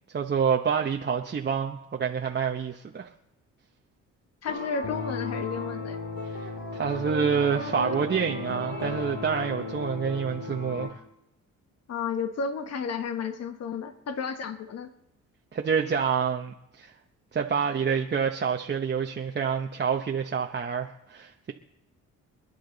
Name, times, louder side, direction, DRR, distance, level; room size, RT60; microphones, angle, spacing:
voice 1, 0.1-3.1 6.2-11.0 15.5-16.9 17.3-21.5, right 6 dB, 35° right, 0.9 m, -27 dB
voice 2, 4.4-6.0 11.9-14.9, left 5 dB, 55° left, 1.4 m, -32 dB
sound 1, 4.5-10.9, left 3 dB, 75° left, 6.0 m, -34 dB
27.5 x 10.0 x 4.0 m
cardioid pair, 90°, 30 cm